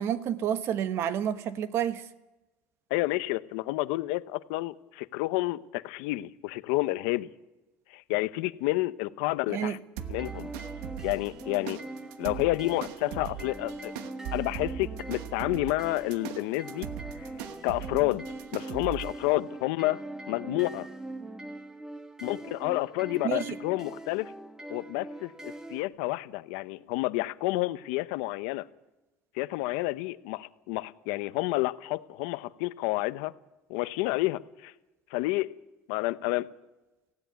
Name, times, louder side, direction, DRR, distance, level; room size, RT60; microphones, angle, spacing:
voice 1, 0.0-2.0 9.5-9.8 23.2-23.4, right 9 dB, 55° right, 1.3 m, -29 dB
voice 2, 2.9-7.3 7.9-9.8 10.1-10.5 11.0-11.8 12.2-13.9 14.3-16.9 17.1-17.3 17.6-18.3 18.5-20.9 22.2-24.3 24.7-28.7 29.3-33.3 33.7-34.7 35.1-35.5 35.9-36.5, left 19 dB, 85° left, 0.8 m, -30 dB
sound 1, 10.0-25.8, right 2 dB, 10° right, 1.5 m, -42 dB
sound 2, 10.0-19.1, right 11 dB, 85° right, 1.2 m, -40 dB
17.5 x 16.0 x 9.3 m
cardioid pair, 120°, 5 cm